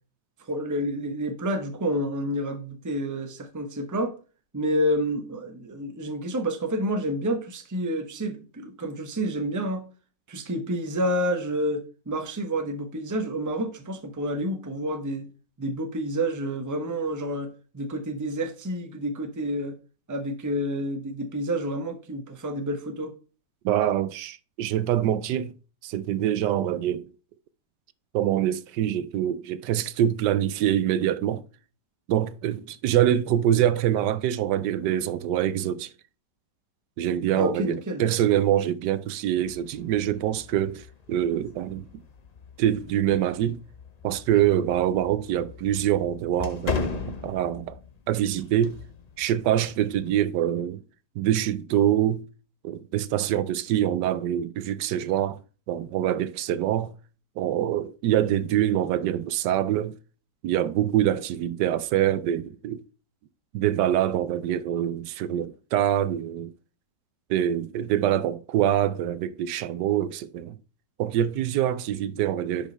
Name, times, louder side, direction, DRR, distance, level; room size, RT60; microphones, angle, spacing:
voice 1, 0.5-4.1 4.5-9.8 10.3-15.3 15.6-19.8 20.1-23.1 37.3-38.0, equal, 15° right, 0.7 m, -29 dB
voice 2, 23.6-25.5 25.8-27.1 28.1-31.4 32.1-35.9 37.0-41.8 42.6-43.6 44.0-47.8 48.1-48.8 49.2-50.8 51.2-52.2 52.6-55.4 55.7-56.9 57.4-60.0 60.4-62.8 63.5-66.5 67.3-70.6 71.0-72.7, right 11 dB, 80° right, 1.2 m, -25 dB
sound 1, 39.3-50.2, left 5 dB, 45° left, 0.5 m, -39 dB
10.5 x 4.9 x 3.3 m
omnidirectional pair, 1.9 m